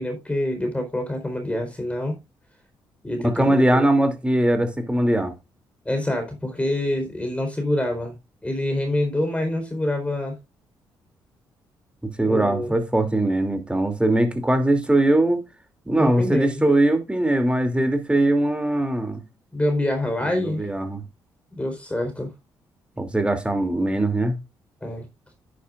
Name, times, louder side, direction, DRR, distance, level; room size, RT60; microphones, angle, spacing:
voice 1, 0.0-2.2 3.0-3.9 5.8-8.1 8.4-10.4 12.2-12.7 16.0-16.7 19.5-20.7 21.5-22.3 24.8-25.1, left 1 dB, 15° left, 4.2 m, -26 dB
voice 2, 3.2-5.3 12.0-15.4 15.9-19.2 20.4-21.0 23.0-24.4, right 1 dB, 10° right, 2.9 m, -21 dB
10.5 x 10.0 x 2.5 m
supercardioid pair, 65°, 9 cm